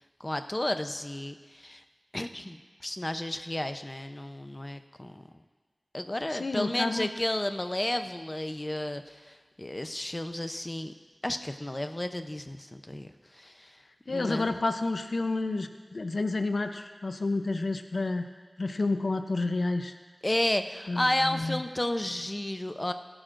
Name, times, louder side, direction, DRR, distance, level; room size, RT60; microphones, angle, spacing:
voice 1, 0.2-1.8 2.1-5.2 5.9-10.9 11.2-13.8 14.1-14.5 20.2-22.9, left 1 dB, 30° left, 8 dB, 0.7 m, -32 dB
voice 2, 6.4-7.1 14.1-18.3 18.6-20.0 20.9-21.6, left 3 dB, 75° left, 7 dB, 0.6 m, -30 dB
22.5 x 11.0 x 2.6 m, 1.4 s
wide cardioid pair, 55°, 0 cm